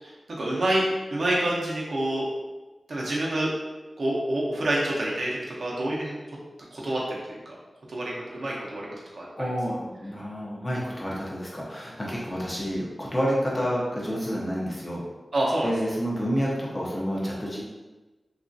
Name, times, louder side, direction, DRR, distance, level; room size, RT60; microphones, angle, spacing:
voice 1, 0.0-2.2 2.9-3.5 4.0-6.4 6.7-7.6 7.9-8.9 9.1-9.5 15.3-15.7, right 1 dB, 70° right, -4 dB, 0.7 m, -27 dB
voice 2, 9.4-15.0 15.6-17.6, equal, 20° left, -5 dB, 0.6 m, -29 dB
2.9 x 2.4 x 2.6 m, 1.2 s
wide cardioid pair, 85°, 0 cm